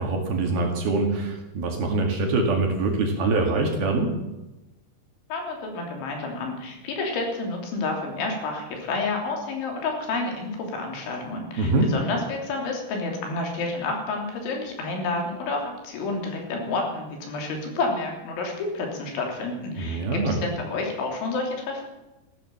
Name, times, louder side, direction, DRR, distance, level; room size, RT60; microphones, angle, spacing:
voice 1, 0.0-4.2 11.6-11.9 19.8-20.4, right 3 dB, 55° right, 2 dB, 3.5 m, -24 dB
voice 2, 5.3-21.8, left 3 dB, 65° left, 1 dB, 5.5 m, -29 dB
16.0 x 12.5 x 7.1 m, 1.0 s
omnidirectional pair, 5.8 m